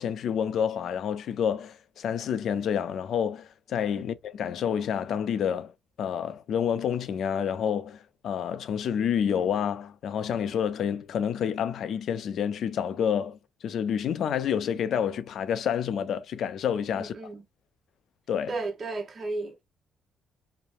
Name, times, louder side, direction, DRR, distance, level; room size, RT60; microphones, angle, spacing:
voice 1, 0.0-5.7 6.0-17.1 18.3-18.5, left 8 dB, 70° left, 0.4 m, -29 dB
voice 2, 16.9-17.4 18.5-19.6, right 3 dB, 40° right, 0.8 m, -34 dB
2.9 x 2.1 x 2.5 m
cardioid pair, 90°, 0 cm